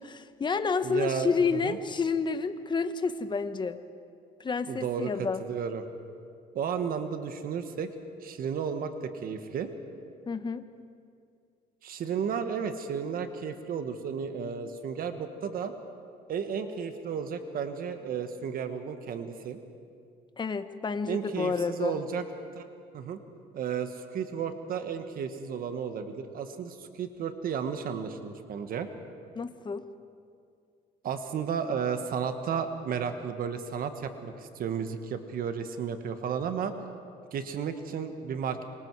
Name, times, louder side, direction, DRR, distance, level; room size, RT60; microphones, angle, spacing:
voice 1, 0.0-3.8 4.4-5.4 10.3-10.6 20.4-22.0 29.3-29.9, left 5 dB, 25° left, 10 dB, 1.1 m, -30 dB
voice 2, 0.8-1.8 4.7-5.8 6.5-7.9 8.2-9.7 11.8-15.7 16.3-19.6 21.0-22.2 22.5-22.7 22.9-23.2 23.5-28.9 31.0-36.7 37.3-38.6, right 7 dB, 60° right, 8 dB, 1.5 m, -33 dB
27.0 x 24.0 x 4.8 m, 2.3 s
cardioid pair, 110°, 17 cm